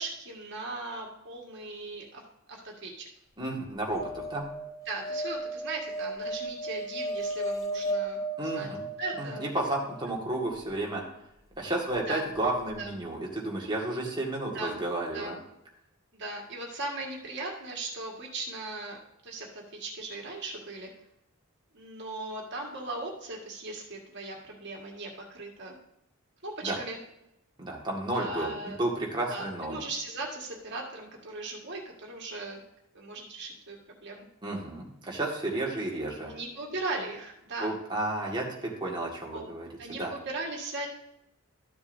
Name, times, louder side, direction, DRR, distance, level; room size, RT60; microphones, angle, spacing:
voice 1, 0.0-2.2 2.5-3.1 4.9-8.7 9.0-9.5 12.1-12.3 12.8-12.9 13.6-13.7 14.5-14.8 15.1-15.4 16.1-19.0 19.2-20.9 21.7-25.8 26.4-27.0 28.1-28.8 29.3-32.6 32.9-34.3 36.3-37.7 39.3-39.4 39.8-40.9, right 2 dB, 55° right, 0 dB, 1.8 m, -38 dB
voice 2, 3.4-4.5 8.4-8.8 9.2-11.0 11.6-15.4 26.6-26.8 27.6-29.8 34.4-36.3 37.6-40.1, right 2 dB, 20° right, -2 dB, 1.8 m, -32 dB
sound 1, 3.9-10.1 12.4-12.5 12.6-12.7, right 1 dB, 15° left, 0.6 m, -35 dB
13.0 x 7.0 x 2.7 m, 0.84 s
head